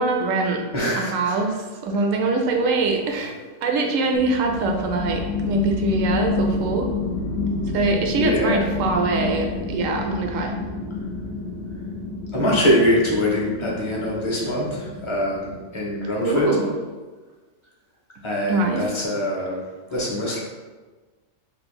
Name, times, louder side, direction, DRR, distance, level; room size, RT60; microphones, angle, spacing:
voice 1, 0.0-0.7 1.0-6.9 7.7-10.5 16.2-16.7 18.5-18.9, right 3 dB, 75° right, 3 dB, 0.9 m, -23 dB
voice 2, 0.7-1.3 8.2-8.6 12.3-16.5 18.2-19.6 19.9-20.4, left 1 dB, 30° left, -3 dB, 0.6 m, -23 dB
sound 1, 4.1-16.2, left 3 dB, 65° left, 0.8 m, -29 dB
3.1 x 2.3 x 4.3 m, 1.3 s
omnidirectional pair, 1.4 m